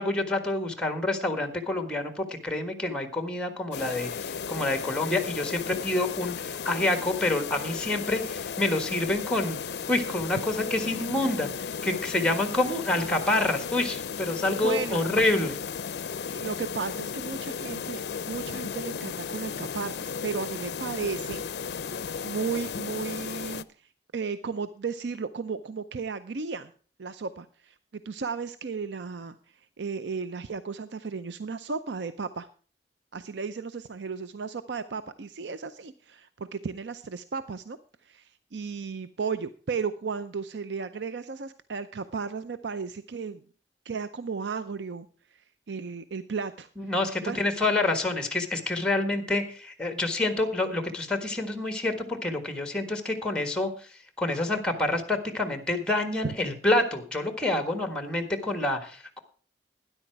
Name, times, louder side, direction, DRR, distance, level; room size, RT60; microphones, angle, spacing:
voice 1, 0.0-9.6 9.9-11.5 11.8-15.6 46.8-53.7 54.2-59.2, left 2 dB, 5° left, 8 dB, 1.6 m, -27 dB
sound 1, 3.7-23.6, left 6 dB, 65° left, 0.5 m, -35 dB
voice 2, 14.6-15.0 16.3-21.4 22.2-23.7 24.1-26.7 27.0-27.8 28.0-29.4 29.8-32.5 33.1-37.8 38.0-43.4 43.9-45.1 45.7-46.7 47.3-47.4 56.2-56.3, right 5 dB, 90° right, 12 dB, 0.6 m, -34 dB
12.5 x 10.0 x 4.6 m, 0.40 s
head